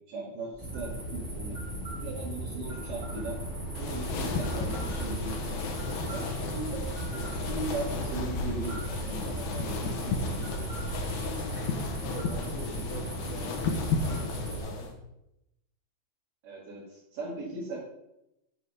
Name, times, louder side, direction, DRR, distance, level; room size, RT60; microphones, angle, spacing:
voice 1, 0.1-1.6 2.0-3.4 3.8-6.2 6.5-10.7 16.4-17.8, right 2 dB, 55° right, -8 dB, 3.6 m, -39 dB
sound 1, 0.5-14.6, right 1 dB, 5° right, 2.1 m, -37 dB
sound 2, 2.7-11.3, right 1 dB, 80° right, 4.4 m, -41 dB
sound 3, 3.7-14.9, left 4 dB, 70° left, 1.9 m, -34 dB
voice 2, 6.2-6.5 11.5-14.9, equal, 30° left, -4 dB, 2.5 m, -42 dB
10.0 x 4.1 x 6.4 m, 0.88 s
omnidirectional pair, 4.8 m